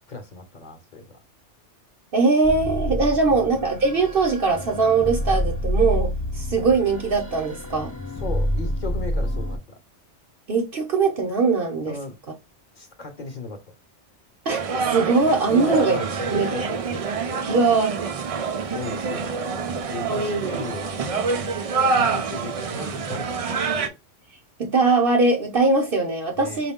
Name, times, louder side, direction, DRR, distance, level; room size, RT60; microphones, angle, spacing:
voice 1, 0.1-1.2 3.3-3.4 8.2-9.8 11.9-12.2 12.7-13.6 15.5-17.4 18.6-21.5 21.9-23.9 26.3-26.6, left 3 dB, 45° left, 0.9 m, -36 dB
voice 2, 2.1-7.9 10.5-12.0 14.4-14.6 14.8-16.0 16.3-16.5 17.5-18.0 20.1-20.6 24.6-26.7, right 3 dB, 55° right, 0.9 m, -21 dB
sound 1, 2.4-9.6, equal, 15° left, 0.8 m, -28 dB
sound 2, 14.5-23.9, right 5 dB, 70° right, 0.3 m, -26 dB
4.9 x 2.4 x 3.6 m
omnidirectional pair, 1.2 m